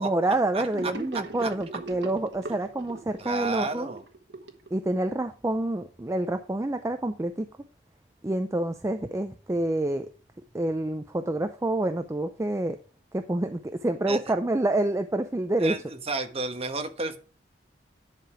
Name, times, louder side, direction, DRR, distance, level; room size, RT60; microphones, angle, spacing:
voice 1, 0.0-3.9 4.7-7.5 8.2-10.1 10.5-12.8 13.1-15.8, right 1 dB, 15° right, 0.5 m, -27 dB
Gurgling / Sink (filling or washing), 0.7-5.2, right 3 dB, 80° right, 1.4 m, -39 dB
voice 2, 3.2-4.0 14.1-14.2 15.6-17.2, right 3 dB, 35° right, 1.2 m, -31 dB
10.5 x 5.0 x 4.9 m
head